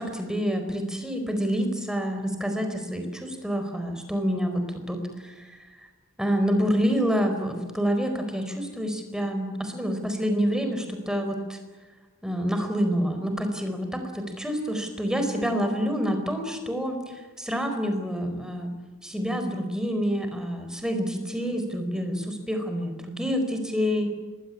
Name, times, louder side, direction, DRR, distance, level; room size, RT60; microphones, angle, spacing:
voice 1, 0.0-5.6 6.2-11.6 12.2-18.7 19.0-24.1, equal, 5° right, 5 dB, 4.4 m, -27 dB
26.0 x 21.5 x 9.7 m, 1.3 s
head